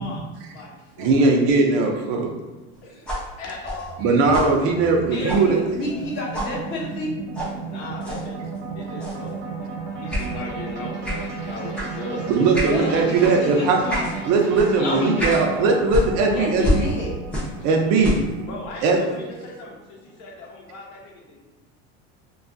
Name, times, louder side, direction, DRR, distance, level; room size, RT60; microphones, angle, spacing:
voice 1, 0.0-1.4 2.8-3.1 3.4-6.2 7.7-8.4 8.7-9.7 10.0-12.5 13.0-13.3 14.8-15.8 18.0-21.4, left 2 dB, 65° left, -1 dB, 0.7 m, -37 dB
voice 2, 1.0-2.3 4.0-5.6 12.3-13.8 14.3-16.9 17.6-18.1 18.8-19.0, right 3 dB, 55° right, 1 dB, 0.5 m, -19 dB
sound 1, 3.0-6.1 6.3-6.6 7.3-7.5 8.0-8.2 9.0-9.3 10.1-10.3 11.0-11.3 11.7-11.9 12.5-12.8 13.2-13.4 13.9-14.1 14.5-14.7 15.2-15.5 15.9-17.6 17.9-18.3, equal, 5° left, 0.5 m, -28 dB
sound 2, 3.6-20.0, right 4 dB, 75° right, 1.0 m, -34 dB
voice 3, 5.1-7.1 12.7-14.1 16.3-17.2, left 1 dB, 35° left, -3 dB, 0.7 m, -29 dB
2.6 x 2.3 x 2.5 m, 1.2 s
cardioid pair, 145°, 32 cm